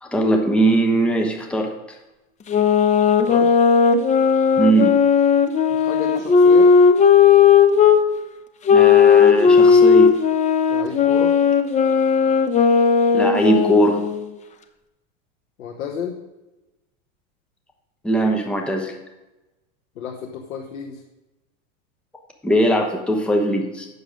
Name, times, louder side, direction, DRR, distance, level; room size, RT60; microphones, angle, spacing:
voice 1, 0.0-1.7 4.6-4.9 8.7-10.1 13.1-14.0 18.0-18.9 22.4-23.9, right 1 dB, 5° left, 2 dB, 1.0 m, -19 dB
sound 1, 2.5-8.0 8.7-14.2, left 6 dB, 20° left, 0.5 m, -15 dB
voice 2, 5.7-6.7 10.7-11.3 15.6-16.2 20.0-21.0, left 7 dB, 90° left, 2 dB, 1.1 m, -31 dB
8.0 x 6.7 x 5.0 m, 1.0 s
supercardioid pair, 120°, 39 cm